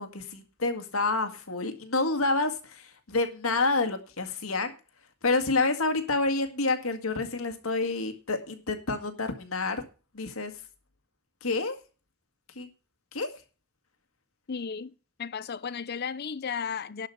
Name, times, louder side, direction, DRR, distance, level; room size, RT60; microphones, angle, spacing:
voice 1, 0.0-4.7 5.2-9.8 10.1-10.5 11.4-11.8 12.6-12.7 13.1-13.3, left 3 dB, 80° left, 1.9 m, -28 dB
voice 2, 14.5-17.1, left 6 dB, 50° left, 0.6 m, -34 dB
11.5 x 5.0 x 8.4 m
head